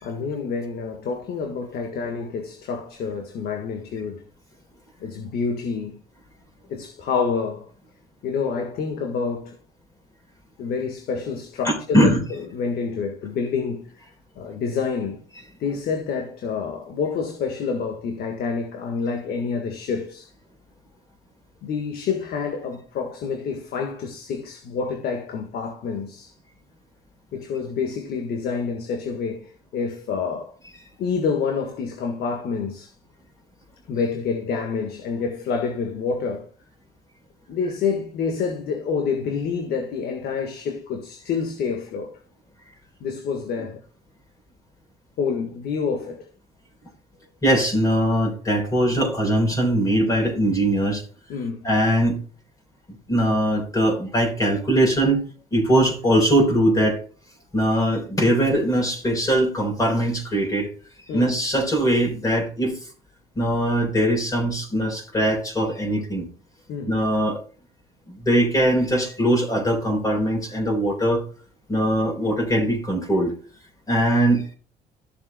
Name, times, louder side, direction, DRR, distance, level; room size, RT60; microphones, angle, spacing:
voice 1, 0.0-4.3 5.0-6.0 6.7-7.7 8.2-9.6 10.6-14.0 14.3-15.2 15.6-20.3 21.6-26.3 27.3-30.6 31.0-32.9 33.9-36.5 37.5-42.2 43.0-43.8 45.2-46.3 51.3-51.7 61.1-61.3 66.7-66.9, left 5 dB, 65° left, 1.6 m, -28 dB
voice 2, 11.6-12.2 47.4-51.0 51.6-52.2 53.1-55.2 55.5-57.0 57.5-60.7 61.1-62.8 63.4-66.3 66.9-67.4 68.1-71.2 71.7-73.3 73.9-74.5, right 1 dB, 20° left, 4.1 m, -21 dB
15.0 x 7.1 x 2.3 m
cardioid pair, 110°, 17 cm